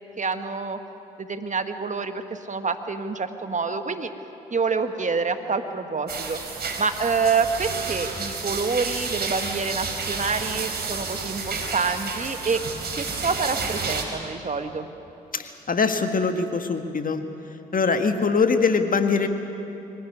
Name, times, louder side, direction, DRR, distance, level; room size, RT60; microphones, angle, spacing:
voice 1, 0.2-0.8 1.2-4.1 4.5-6.4 6.8-12.6 12.9-14.9, right 4 dB, 35° right, 8 dB, 1.6 m, -27 dB
sound 1, 6.1-14.0, right 4 dB, 50° right, 3.8 m, -31 dB
voice 2, 15.3-17.2 17.7-19.3, left 4 dB, 40° left, 7 dB, 1.8 m, -22 dB
24.5 x 15.0 x 9.7 m, 2.9 s
hypercardioid pair, 40°, 21 cm